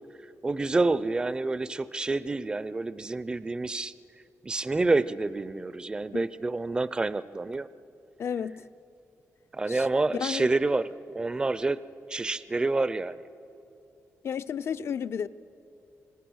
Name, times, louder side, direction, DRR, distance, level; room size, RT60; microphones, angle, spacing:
voice 1, 0.4-3.9 4.4-7.7 9.5-10.9 11.1-11.8 12.1-13.2, right 3 dB, 15° right, 0.4 m, -28 dB
voice 2, 8.2-8.7 9.7-9.9 10.1-10.5 14.2-15.3, left 7 dB, 55° left, 0.5 m, -32 dB
25.5 x 19.5 x 6.3 m
wide cardioid pair, 140°, 5 cm